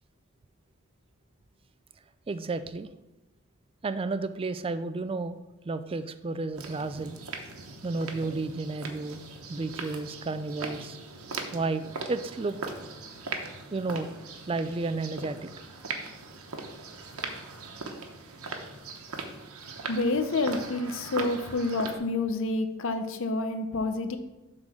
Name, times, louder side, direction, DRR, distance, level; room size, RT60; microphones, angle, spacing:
voice 1, 2.3-2.9 3.8-5.4 5.6-7.2 7.8-9.2 9.5-11.0 11.5-12.6 13.7-14.2 14.5-15.5, right 3 dB, 25° right, 11 dB, 0.3 m, -32 dB
sound 1, 6.5-22.0, right 3 dB, 85° right, 1.0 m, -40 dB
voice 2, 19.9-24.2, left 2 dB, 65° left, 8 dB, 0.7 m, -28 dB
7.6 x 3.8 x 6.1 m, 0.98 s
head